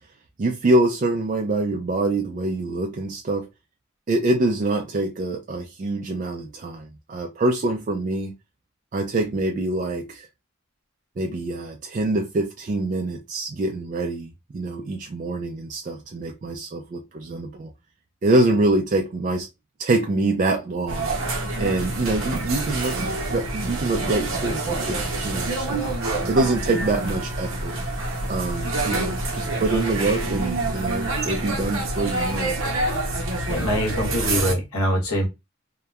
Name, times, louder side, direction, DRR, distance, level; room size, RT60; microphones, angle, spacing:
voice 1, 0.4-3.5 4.1-8.3 8.9-10.3 11.2-17.7 18.2-19.5 19.8-21.1 21.6-25.8 26.3-27.8 28.3-32.5, right 2 dB, 40° right, 0.3 m, -25 dB
sound 1, 20.9-34.5, right 2 dB, 70° right, 0.7 m, -27 dB
voice 2, 33.5-35.3, equal, 85° left, 1.1 m, -24 dB
2.8 x 2.1 x 2.3 m
head